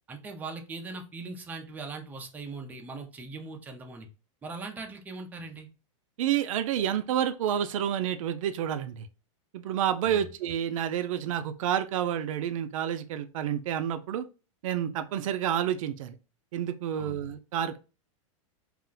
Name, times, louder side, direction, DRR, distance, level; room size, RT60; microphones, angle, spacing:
voice 1, 0.1-4.1 4.4-5.7 10.0-10.3 17.0-17.2, right 3 dB, 10° right, 0.4 m, -40 dB
voice 2, 6.2-9.1 9.5-14.2 14.6-16.1 16.5-17.8, right 10 dB, 75° right, 0.4 m, -29 dB
2.4 x 2.1 x 3.7 m
supercardioid pair, 135°, 17 cm